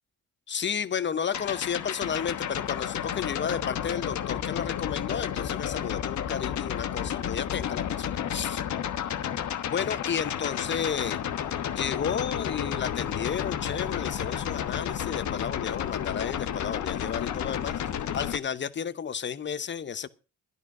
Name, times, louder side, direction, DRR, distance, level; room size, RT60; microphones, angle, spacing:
voice 1, 0.5-8.6 9.7-11.2 11.7-20.1, left 7 dB, 40° left, 0.9 m, -32 dB
sound 1, 1.3-18.4, left 9 dB, 70° left, 1.2 m, -31 dB
12.5 x 10.5 x 6.0 m
cardioid pair, 90°, 30 cm